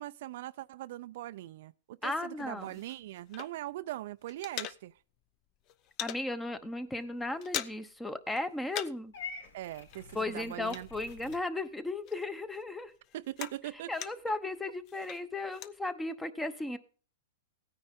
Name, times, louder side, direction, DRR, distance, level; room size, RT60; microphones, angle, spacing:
voice 1, 0.0-5.0 9.5-10.9 13.1-13.9, right 15 dB, 55° right, 0.4 m, -41 dB
voice 2, 2.0-2.7 6.0-9.1 10.1-12.9 13.9-16.8, left 2 dB, 5° left, 0.9 m, -35 dB
sound 1, 2.4-3.8 4.1-5.2 5.5-6.3 6.7-6.8 7.1-8.0 8.3-9.1 9.4-11.7 12.1-14.4 14.9-15.8, left 11 dB, 30° left, 0.6 m, -42 dB
Purr / Meow, 9.1-11.4, left 5 dB, 80° left, 4.3 m, -46 dB
17.0 x 9.6 x 3.6 m
hypercardioid pair, 150°, 0 cm